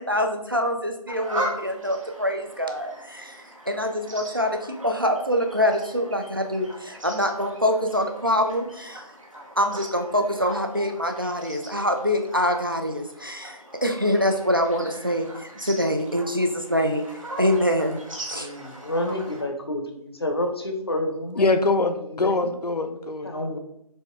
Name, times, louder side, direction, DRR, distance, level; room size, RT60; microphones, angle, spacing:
voice 1, 0.0-9.0 9.6-17.1 17.4-18.0 18.3-18.5, equal, 35° right, 4 dB, 0.4 m, -25 dB
sound 1, 1.1-19.4, right 1 dB, 60° right, 1.2 m, -39 dB
voice 2, 18.3-21.5 22.0-22.4 23.2-23.6, left 1 dB, 40° left, 5 dB, 0.6 m, -29 dB
voice 3, 21.4-23.3, left 3 dB, 90° left, 8 dB, 0.6 m, -23 dB
4.2 x 3.2 x 3.5 m, 0.77 s
figure-of-eight pair, 165°, 20 cm